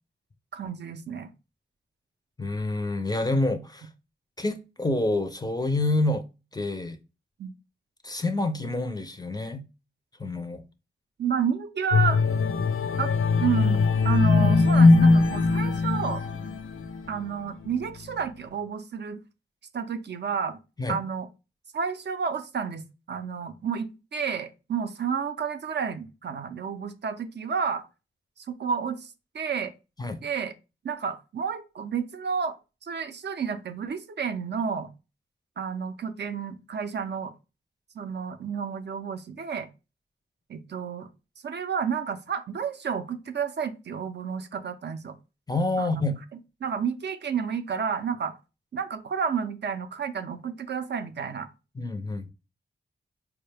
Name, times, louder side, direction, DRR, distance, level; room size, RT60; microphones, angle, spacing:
voice 1, 0.5-1.3 7.4-7.5 11.2-12.2 13.0-13.1 13.4-16.2 17.1-19.2 19.7-20.6 20.9-21.3 21.7-27.9 28.4-29.7 30.2-30.5 30.8-32.6 32.8-34.9 35.6-37.3 38.0-39.7 40.5-41.1 41.4-45.2 45.8-46.0 46.6-48.3 48.7-51.5, right 6 dB, 55° right, 0.4 m, -30 dB
voice 2, 2.4-3.9 4.4-6.2 6.5-7.0 8.0-9.6 10.2-10.6 20.8-21.0 30.0-30.2 45.5-46.2 51.8-52.3, left 2 dB, 20° left, 0.4 m, -27 dB
sound 1, 11.9-17.2 17.7-17.9, left 3 dB, 80° left, 0.4 m, -21 dB
4.6 x 2.1 x 3.2 m
wide cardioid pair, 100°, 21 cm